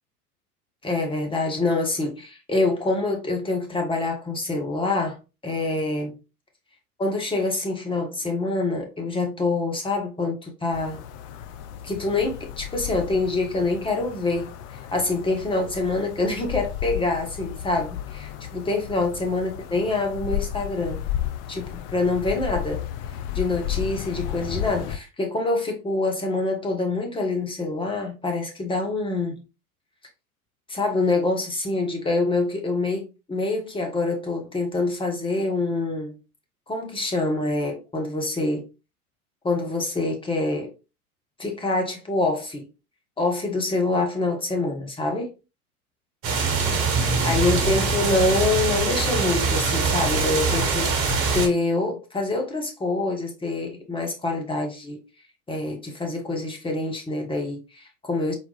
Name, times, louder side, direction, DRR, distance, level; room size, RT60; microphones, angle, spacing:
voice 1, 0.8-5.2 5.4-6.2 7.0-11.0 11.8-21.0 21.5-22.8 23.3-29.4 30.7-36.2 36.7-38.7 39.4-40.7 41.4-42.7 43.2-45.3 47.2-55.0 55.5-58.3, left 2 dB, 10° left, 1.2 m, -26 dB
sound 1, 10.7-25.0, left 11 dB, 35° left, 0.4 m, -33 dB
sound 2, 46.2-51.5, right 4 dB, 40° right, 1.5 m, -23 dB
4.3 x 4.2 x 2.4 m
hypercardioid pair, 90°, 45 cm